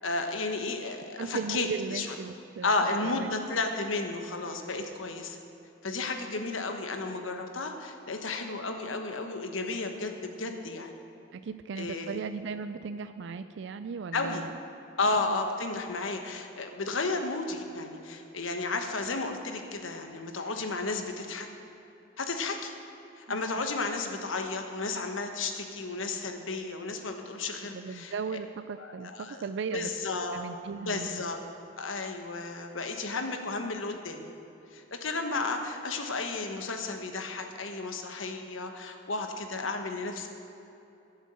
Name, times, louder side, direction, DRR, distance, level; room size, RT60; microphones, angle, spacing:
voice 1, 0.0-2.1 2.6-5.4 5.8-10.9 11.8-12.2 14.1-14.4 15.0-21.5 22.2-22.7 23.2-28.4 28.8-29.4 29.7-30.4 30.9-31.4 31.8-34.3 34.7-40.3, left 3 dB, 85° left, 5 dB, 1.2 m, -33 dB
voice 2, 1.2-2.8 3.0-3.3 11.3-14.5 15.2-15.4 23.3-23.4 27.6-29.9 30.3-31.3, right 5 dB, 65° right, 10 dB, 0.4 m, -37 dB
12.5 x 7.2 x 7.6 m, 2.9 s
head